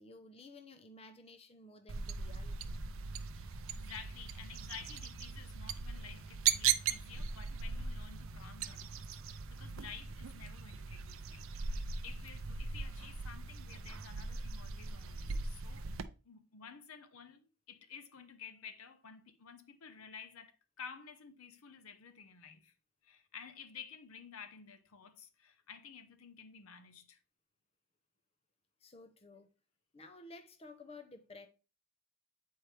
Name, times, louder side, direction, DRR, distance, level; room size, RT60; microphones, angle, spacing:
voice 1, 0.0-2.8 28.8-29.5 29.9-31.5, left 2 dB, 25° left, 0.6 m, -54 dB
sound 1, 1.9-16.0, right 6 dB, 65° right, 0.5 m, -39 dB
voice 2, 3.4-15.9 16.2-22.7 23.0-27.2, left 6 dB, 75° left, 0.8 m, -52 dB
8.0 x 4.6 x 3.3 m
head